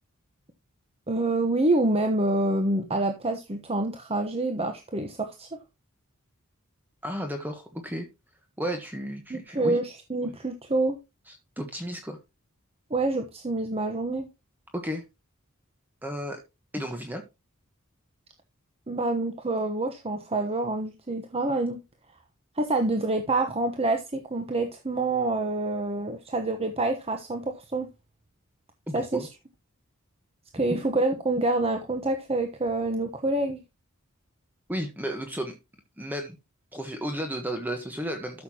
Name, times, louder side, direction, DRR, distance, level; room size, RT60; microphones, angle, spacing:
voice 1, 1.1-5.6 9.3-11.0 12.9-14.3 18.9-21.8 22.6-27.9 28.9-29.3 30.5-33.6, right 2 dB, 30° right, 1.1 m, -27 dB
voice 2, 7.0-8.1 8.6-9.8 10.2-10.3 11.3-12.2 14.7-15.0 16.0-16.4 16.7-17.2 28.9-29.3 30.7-30.8 34.7-35.6 36.0-36.3 36.7-38.4, equal, 10° right, 1.2 m, -33 dB
12.5 x 6.7 x 2.9 m
head